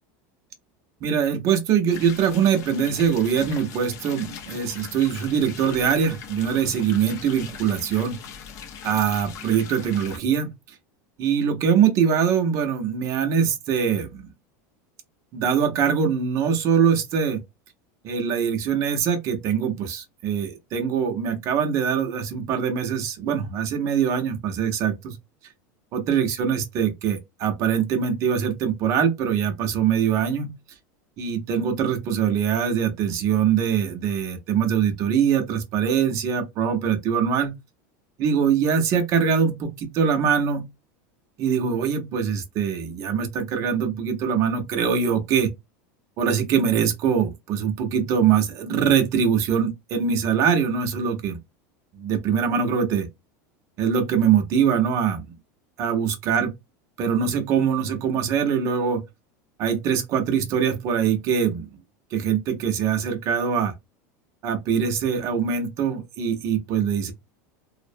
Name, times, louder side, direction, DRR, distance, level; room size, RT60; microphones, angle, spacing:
voice 1, 1.0-8.2 8.8-10.5 11.2-14.3 15.3-17.4 18.0-25.2 25.9-30.5 31.2-37.5 38.2-40.7 41.4-45.5 46.2-51.4 51.9-53.1 53.8-55.3 55.8-56.5 57.0-59.0 59.6-61.7 62.1-63.7 64.4-67.1, right 7 dB, 35° right, 0.6 m, -23 dB
sound 1, 1.9-10.2, left 7 dB, 35° left, 0.4 m, -40 dB
2.5 x 2.0 x 2.5 m
supercardioid pair, 165°, 9 cm